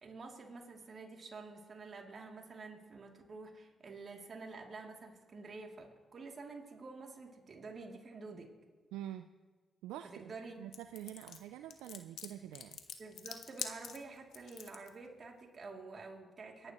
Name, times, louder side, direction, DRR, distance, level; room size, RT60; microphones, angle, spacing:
voice 1, 0.0-8.5 10.1-10.6 13.0-16.7, right 3 dB, 55° right, 1 dB, 2.8 m, -49 dB
voice 2, 8.9-9.3 9.8-10.3 10.6-12.8, right 12 dB, 85° right, 9 dB, 0.3 m, -46 dB
sound 1, 10.7-14.9, left 7 dB, 75° left, 1.1 m, -45 dB
25.0 x 11.0 x 3.0 m, 1.4 s
supercardioid pair, 45°, 0 cm